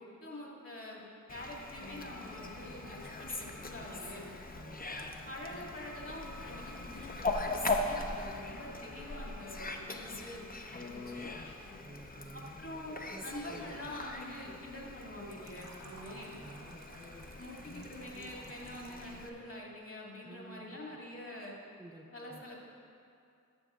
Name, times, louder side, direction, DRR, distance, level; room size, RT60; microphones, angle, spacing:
voice 1, 0.0-4.3 5.2-11.3 12.3-16.4 17.4-21.6 22.1-22.6, left 1 dB, 45° left, -2 dB, 2.1 m, -46 dB
sound 1, 1.3-11.8, left 2 dB, 65° left, 1.0 m, -54 dB
Fowl, 1.3-19.3, left 2 dB, 30° left, 0.8 m, -41 dB
voice 2, 4.5-5.1 5.5-5.6 11.8-12.6 13.1-13.9 16.4-16.8 20.2-21.0 21.8-22.5, right 2 dB, 10° right, 1 dB, 0.5 m, -52 dB
Fill (with liquid), 15.3-19.1, right 3 dB, 60° right, 1.0 m, -57 dB
12.0 x 6.9 x 3.7 m, 2.5 s
cardioid pair, 60°, 31 cm